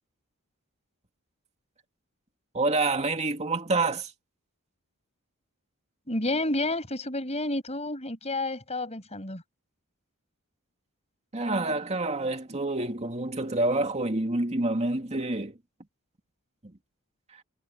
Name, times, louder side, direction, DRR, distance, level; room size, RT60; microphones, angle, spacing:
voice 1, 2.5-4.1 11.3-15.6 16.6-16.7, right 2 dB, 30° right, 2.5 m, -27 dB
voice 2, 6.1-9.4, left 2 dB, 30° left, 7.2 m, -30 dB
head